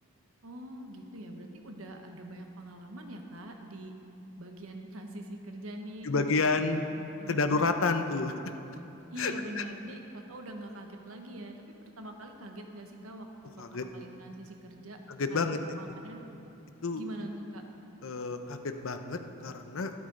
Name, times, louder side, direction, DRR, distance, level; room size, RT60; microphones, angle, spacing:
voice 1, 0.4-3.9 4.4-6.6 6.9-7.6 9.1-15.0 15.3-16.2 16.9-17.6, right 1 dB, 85° right, 3 dB, 1.1 m, -44 dB
voice 2, 6.0-6.8 7.3-8.3 9.2-9.6 13.6-13.9 15.1-15.6 16.8-17.0 18.0-19.9, left 4 dB, 75° left, 7 dB, 0.7 m, -30 dB
12.5 x 12.0 x 3.9 m, 2.9 s
head